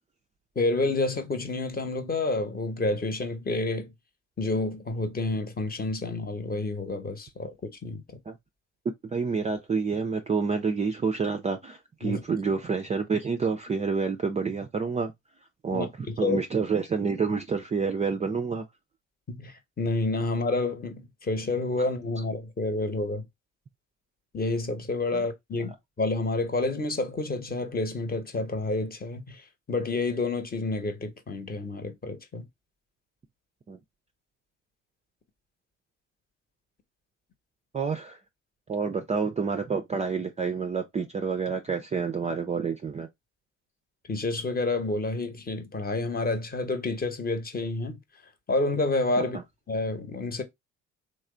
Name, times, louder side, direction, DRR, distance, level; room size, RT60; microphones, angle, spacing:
voice 1, 0.5-3.9 4.4-8.0 12.0-12.2 15.7-15.9 16.2-16.4 19.3-23.3 24.3-32.4 44.1-48.0 48.5-49.4 49.7-50.4, left 2 dB, 25° left, 0.9 m, -29 dB
voice 2, 9.0-15.1 15.6-18.6 25.1-25.3 33.7-33.8 37.7-38.2 38.7-43.1 49.2-49.4, right 5 dB, 20° right, 0.4 m, -28 dB
3.2 x 2.1 x 3.7 m
hypercardioid pair, 55°, 38 cm